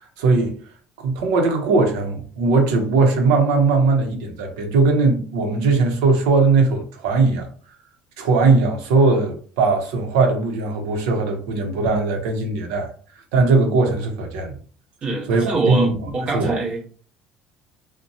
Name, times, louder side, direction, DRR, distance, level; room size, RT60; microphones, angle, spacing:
voice 1, 0.2-0.5 1.0-7.5 8.2-12.9 13.3-14.6 15.3-15.9 16.3-16.5, right 3 dB, 90° right, 0.7 m, -19 dB
voice 2, 15.0-16.8, right 3 dB, 35° right, 1.0 m, -24 dB
2.6 x 2.1 x 2.6 m
cardioid pair, 125°, 3 cm